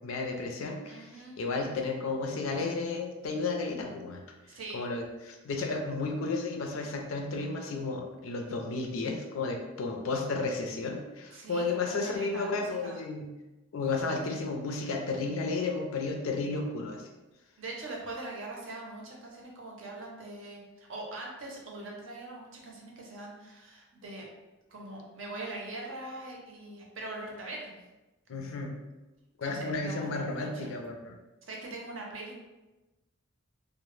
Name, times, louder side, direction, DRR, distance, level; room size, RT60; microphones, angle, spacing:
voice 1, 0.0-1.1 1.4-4.2 4.7-13.3 13.7-17.0 28.3-28.7 29.4-31.2, left 3 dB, 80° left, 2 dB, 0.4 m, -33 dB
voice 2, 0.9-1.4 4.5-4.8 11.3-13.0 17.6-24.3 24.7-27.8 29.4-30.7 31.5-32.4, right 2 dB, 70° right, -1 dB, 0.6 m, -42 dB
2.0 x 2.0 x 3.0 m, 1.1 s
head